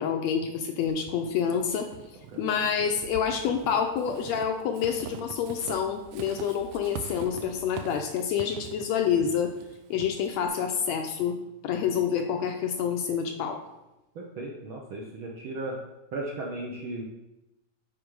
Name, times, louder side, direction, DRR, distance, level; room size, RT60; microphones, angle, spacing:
voice 1, 0.0-1.9 2.4-9.5 9.9-11.4 11.6-13.6, left 7 dB, 80° left, 4 dB, 1.7 m, -28 dB
Walk footsteps / Squeak, 0.9-10.5, right 8 dB, 90° right, 1.4 m, -43 dB
voice 2, 14.1-15.8 16.1-17.0, right 2 dB, 65° right, -2 dB, 1.3 m, -36 dB
8.7 x 5.1 x 4.7 m, 0.93 s
omnidirectional pair, 3.5 m